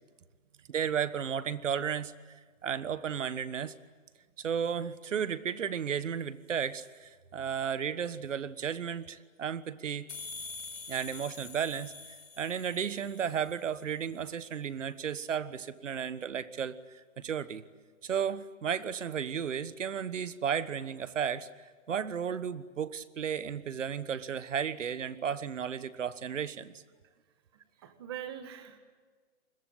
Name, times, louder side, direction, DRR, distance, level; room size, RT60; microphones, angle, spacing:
voice 1, 0.7-2.1 2.6-3.7 4.4-10.1 10.9-11.9 12.4-16.8 17.2-17.6 18.0-21.5 21.9-26.7, right 7 dB, 65° right, 15 dB, 1.4 m, -33 dB
sound 1, 10.1-13.7, left 4 dB, 70° left, 6.4 m, -45 dB
voice 2, 27.8-28.8, right 10 dB, 20° right, 8 dB, 1.5 m, -42 dB
29.0 x 22.0 x 9.0 m, 1.5 s
hypercardioid pair, 180°, 40 cm